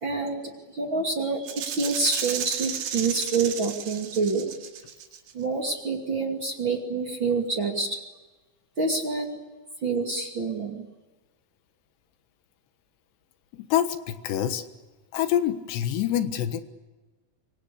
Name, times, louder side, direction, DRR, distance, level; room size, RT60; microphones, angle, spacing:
voice 1, 0.0-4.5 5.3-8.0 8.8-9.4 9.8-10.9, right 4 dB, 35° right, 2 dB, 2.5 m, -27 dB
Rattle (instrument), 1.5-5.3, right 9 dB, 70° right, 3.8 m, -33 dB
voice 2, 13.5-14.6 15.1-16.6, left 10 dB, 75° left, 9 dB, 3.4 m, -26 dB
26.0 x 25.0 x 8.4 m, 1.2 s
omnidirectional pair, 5.0 m